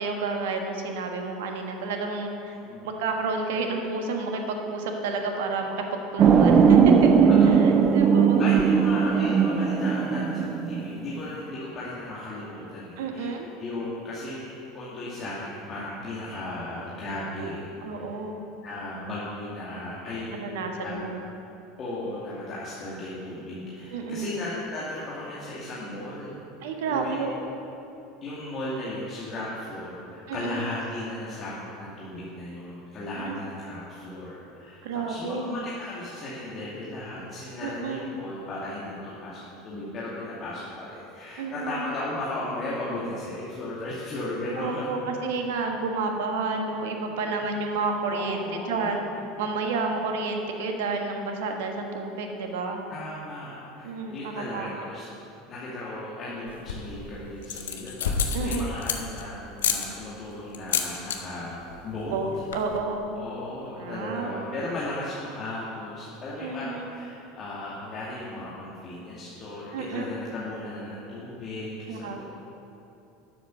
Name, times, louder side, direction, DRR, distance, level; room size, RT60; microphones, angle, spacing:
voice 1, 0.0-2.6 2.8-6.9 7.2-8.4 13.0-13.5 17.8-18.4 20.4-21.2 23.9-24.4 26.6-27.5 30.3-30.6 33.2-33.4 34.8-35.5 37.6-38.0 41.4-41.8 44.6-49.0 49.4-52.8 53.8-54.7 58.3-58.7 62.1-63.1 63.8-64.4 66.4-66.9 69.7-70.1 71.9-72.2, right 3 dB, 60° right, 3 dB, 1.5 m, -30 dB
sound 1, 6.2-11.2, right 6 dB, 35° right, 0.7 m, -19 dB
voice 2, 7.3-7.7 8.0-13.3 13.6-17.9 18.6-20.5 20.8-21.1 21.8-26.4 26.8-27.3 28.2-45.0 48.1-49.0 52.9-55.0 55.5-62.2 63.2-72.2, left 1 dB, 35° left, -7 dB, 2.4 m, -36 dB
sound 2, 56.5-57.0 57.4-59.2 59.6-59.9 60.5-61.2 61.5-61.8 62.0-62.1 62.4-62.8, left 7 dB, 70° left, 0.9 m, -28 dB
12.0 x 8.1 x 7.1 m, 2.8 s
figure-of-eight pair, 75°, 0 cm